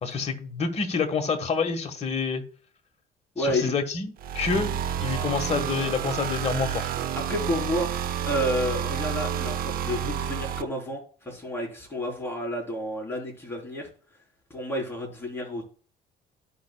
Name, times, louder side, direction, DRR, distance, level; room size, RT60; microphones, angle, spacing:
voice 1, 0.0-2.4 3.4-4.7 5.0-6.9, left 5 dB, 40° left, 6 dB, 1.4 m, -28 dB
voice 2, 3.4-3.7 7.3-7.9 8.2-13.9 14.5-15.7, left 1 dB, 15° left, -2 dB, 3.8 m, -30 dB
sound 1, 4.2-10.6, right 9 dB, 60° right, 0.7 m, -29 dB
13.5 x 5.5 x 2.3 m, 0.42 s
cardioid pair, 110°, 17 cm